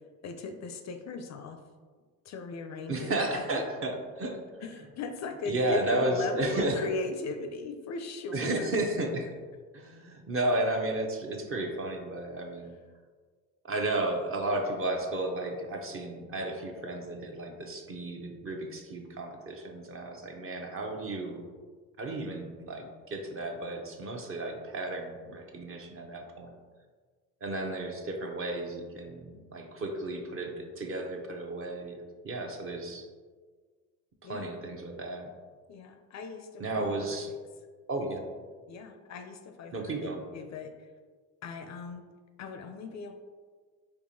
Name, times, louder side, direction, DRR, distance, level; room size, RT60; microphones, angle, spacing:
voice 1, 0.2-1.6 2.2-3.7 4.6-8.7 34.2-34.5 35.7-37.4 38.7-40.9 41.4-42.1 42.4-43.1, left 4 dB, 45° left, 6 dB, 0.4 m, -38 dB
voice 2, 2.9-4.4 5.5-6.8 8.3-9.3 9.7-12.7 13.7-21.4 22.0-26.5 27.4-33.1 34.2-35.3 36.6-37.3 37.9-38.2 39.7-40.2, right 2 dB, 35° right, 3 dB, 0.6 m, -33 dB
4.6 x 2.5 x 2.7 m, 1.5 s
supercardioid pair, 65°, 38 cm